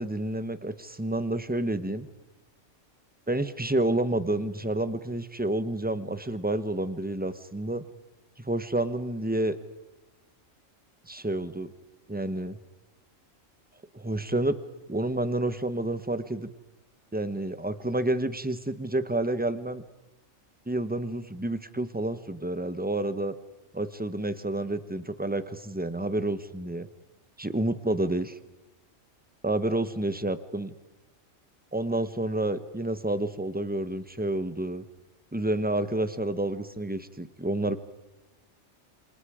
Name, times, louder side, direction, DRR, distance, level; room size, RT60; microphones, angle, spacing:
voice 1, 0.0-2.1 3.3-7.8 8.4-9.6 11.1-11.7 12.1-12.6 13.9-14.5 14.9-16.5 17.1-19.8 20.7-23.3 23.7-26.9 27.4-28.4 29.4-30.7 31.7-34.8 35.3-37.8, right 1 dB, 10° right, 12 dB, 0.9 m, -29 dB
27.5 x 27.5 x 5.0 m, 1.1 s
omnidirectional pair, 1.4 m